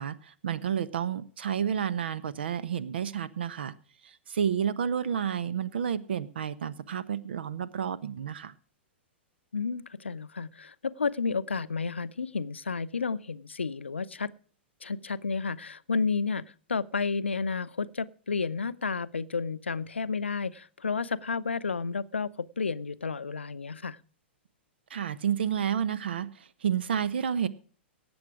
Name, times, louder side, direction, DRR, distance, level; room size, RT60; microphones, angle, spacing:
voice 1, 0.0-3.7 4.0-8.5 24.9-27.5, right 8 dB, 60° right, 1.0 m, -30 dB
voice 2, 9.5-14.3 14.8-24.0, left 5 dB, 75° left, 0.6 m, -31 dB
17.5 x 8.0 x 4.9 m
figure-of-eight pair, 105°, 6 cm